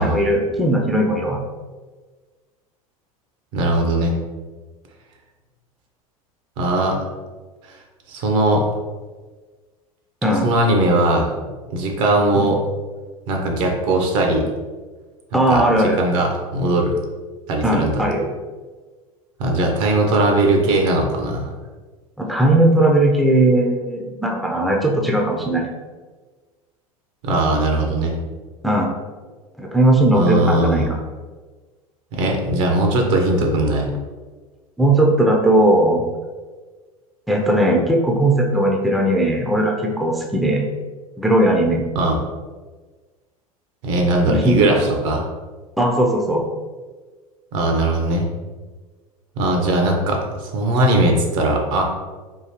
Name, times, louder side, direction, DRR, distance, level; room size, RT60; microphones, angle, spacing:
voice 1, 0.0-1.4 10.2-10.5 12.4-12.5 15.3-16.0 17.6-18.3 22.2-25.7 28.6-28.9 29.6-30.9 34.8-36.0 37.3-40.7 41.2-41.8 44.3-44.8 45.8-46.4, right 1 dB, ahead, -1 dB, 0.5 m, -18 dB
voice 2, 3.5-4.1 6.6-7.0 8.1-8.6 10.4-11.3 11.7-12.6 13.3-14.5 15.3-17.0 17.5-18.1 19.4-21.5 27.2-28.1 30.1-30.9 32.1-33.9 41.9-42.2 43.8-45.3 47.5-48.3 49.4-51.8, right 1 dB, 60° right, 1 dB, 0.8 m, -19 dB
3.7 x 2.7 x 2.9 m, 1.4 s
hypercardioid pair, 80°, 19 cm